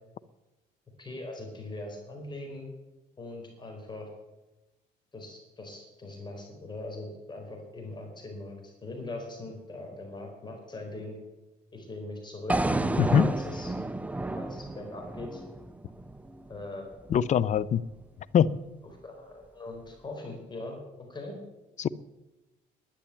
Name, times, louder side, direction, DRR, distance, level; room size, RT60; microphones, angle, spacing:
voice 1, 1.0-2.7 3.2-4.1 5.1-11.2 11.7-13.7 14.4-15.4 16.5-16.9 19.0-20.8 21.1-21.4, left 2 dB, 25° left, 2 dB, 4.6 m, -41 dB
sound 1, 12.5-16.6, right 2 dB, 10° right, 0.5 m, -31 dB
voice 2, 13.0-13.3 17.1-17.8 18.3-18.5 21.8-21.9, left 8 dB, 45° left, 18 dB, 0.6 m, -22 dB
12.0 x 10.0 x 8.4 m, 1.0 s
cardioid pair, 110°, 17 cm